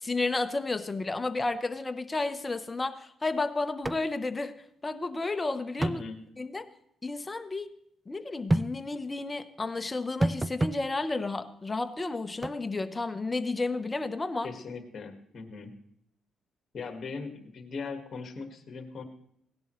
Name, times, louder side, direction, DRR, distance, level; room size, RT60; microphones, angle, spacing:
voice 1, 0.0-4.5 4.8-6.0 6.4-6.7 7.0-7.7 8.1-14.5, left 3 dB, 20° left, 10 dB, 0.8 m, -32 dB
sound 1, 3.8-4.0 4.3-4.4 5.8-6.0 8.5-8.7 10.2-10.8 12.4-12.6, right 1 dB, 20° right, 0.3 m, -27 dB
voice 2, 5.8-6.2 14.4-15.7 16.7-19.0, left 4 dB, 50° left, 5 dB, 1.6 m, -39 dB
17.5 x 10.5 x 3.1 m, 0.72 s
cardioid pair, 90°, 0 cm